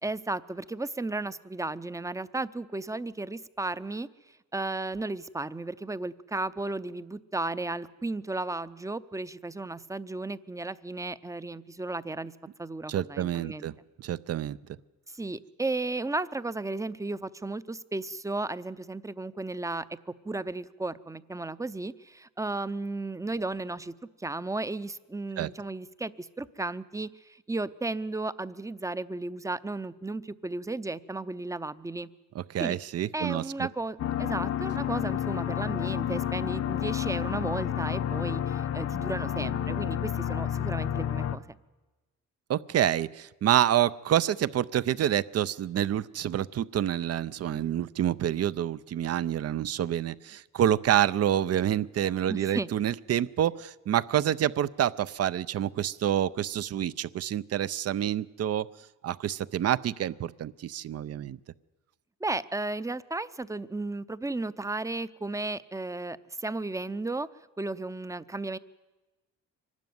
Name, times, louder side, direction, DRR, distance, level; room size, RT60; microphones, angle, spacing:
voice 1, 0.0-4.1 4.5-12.3 12.6-13.7 15.1-32.1 32.6-32.8 33.1-41.6 52.3-52.7 62.2-67.3 67.6-68.6, right 2 dB, 10° right, 16 dB, 0.6 m, -34 dB
voice 2, 12.9-13.7 14.0-14.6 25.4-25.5 32.3-33.7 42.5-58.7 59.0-61.4, right 11 dB, 55° right, 17 dB, 0.6 m, -27 dB
sound 1, 34.0-41.4, left 10 dB, 55° left, 0.9 m, -30 dB
24.0 x 12.5 x 9.4 m, 1.2 s
cardioid pair, 90°, 30 cm